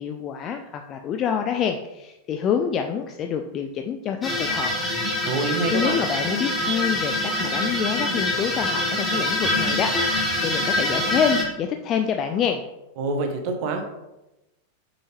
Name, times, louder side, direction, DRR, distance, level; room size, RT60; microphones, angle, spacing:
voice 1, 0.0-4.7 5.7-12.6, left 7 dB, 30° left, 5 dB, 0.4 m, -26 dB
sound 1, 4.2-11.4, left 1 dB, 10° left, 1.7 m, -25 dB
voice 2, 5.2-6.0 13.0-13.9, right 3 dB, 45° right, 4 dB, 1.1 m, -26 dB
5.6 x 5.4 x 3.1 m, 0.96 s
figure-of-eight pair, 90°, 0 cm